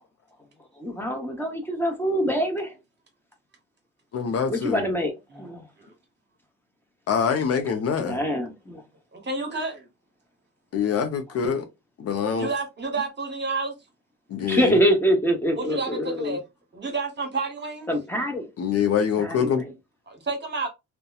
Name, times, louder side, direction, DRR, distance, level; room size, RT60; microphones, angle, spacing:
voice 1, 0.8-2.7 4.5-5.6 8.0-8.8 14.5-16.4 17.9-18.5 19.2-19.7, equal, 5° left, 0.9 m, -25 dB
voice 2, 4.1-4.8 7.1-8.2 10.7-11.7 12.0-12.5 14.3-14.8 18.6-19.6, left 7 dB, 55° left, 0.6 m, -24 dB
voice 3, 9.1-9.9 12.4-13.7 15.6-16.4 16.7-17.9 20.1-20.7, right 3 dB, 35° right, 1.2 m, -30 dB
2.6 x 2.2 x 2.3 m
cardioid pair, 90°, 30 cm